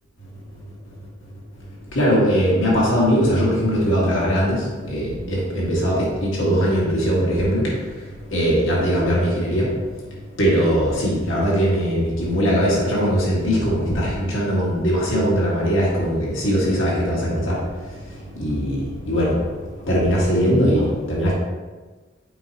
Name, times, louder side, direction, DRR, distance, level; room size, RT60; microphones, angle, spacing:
voice 1, 1.9-4.6 4.9-7.7 8.3-9.7 10.4-17.6 18.4-19.4 19.9-21.3, equal, 85° left, -5 dB, 1.9 m, -20 dB
7.9 x 5.2 x 2.9 m, 1.3 s
head